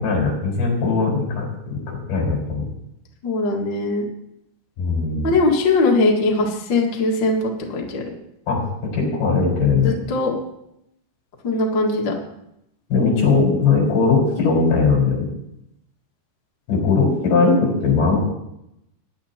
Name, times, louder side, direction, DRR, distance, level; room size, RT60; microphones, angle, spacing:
voice 1, 0.0-2.7 4.8-5.3 8.5-10.0 12.9-15.3 16.7-18.2, left 4 dB, 70° left, -3 dB, 6.3 m, -19 dB
voice 2, 3.2-4.0 5.2-8.0 9.8-10.3 11.4-12.1, left 2 dB, 45° left, -1 dB, 1.7 m, -20 dB
20.5 x 11.0 x 2.9 m, 0.82 s
omnidirectional pair, 4.6 m